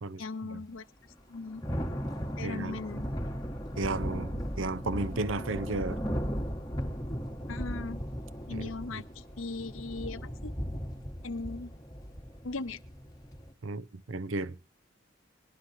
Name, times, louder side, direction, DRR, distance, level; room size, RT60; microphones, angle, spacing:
voice 1, 0.2-0.9 1.3-1.7 2.4-3.1 7.5-8.0 8.5-10.5 11.2-11.7 12.4-12.8, left 3 dB, 85° left, 0.8 m, -38 dB
Thunder / Rain, 1.1-13.5, equal, 20° left, 1.2 m, -37 dB
voice 2, 2.4-2.8 3.8-6.0 8.5-8.7 13.6-14.6, right 3 dB, 75° right, 0.6 m, -33 dB
23.0 x 11.5 x 2.6 m
head